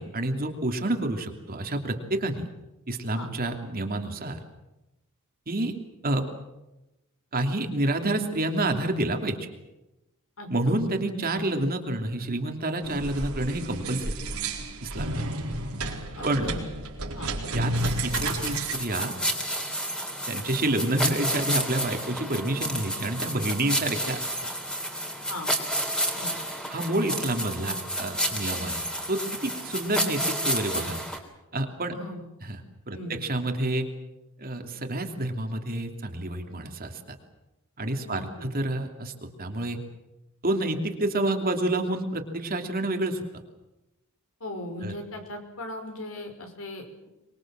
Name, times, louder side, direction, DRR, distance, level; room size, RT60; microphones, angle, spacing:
voice 1, 0.0-2.5 2.9-4.4 5.5-5.7 6.0-6.3 7.3-9.5 10.5-14.1 14.8-15.2 16.2-16.5 17.5-17.7 18.0-19.1 20.3-24.3 26.7-31.0 31.5-32.0 32.4-32.6 32.9-33.9 34.4-37.2 37.8-39.8 40.4-43.4 44.8-44.9, right 1 dB, 45° right, 4 dB, 2.9 m, -28 dB
sound 1, 12.8-18.7, right 2 dB, 80° right, 4.5 m, -31 dB
voice 2, 16.1-16.6 17.1-17.3 25.3-25.5 26.2-26.3 31.9-32.2 32.9-33.2 38.0-38.5 44.4-47.1, left 1 dB, 70° left, 5 dB, 5.6 m, -38 dB
sound 2, 17.8-31.2, equal, 5° left, 3.7 m, -30 dB
25.0 x 22.0 x 7.6 m, 0.97 s
head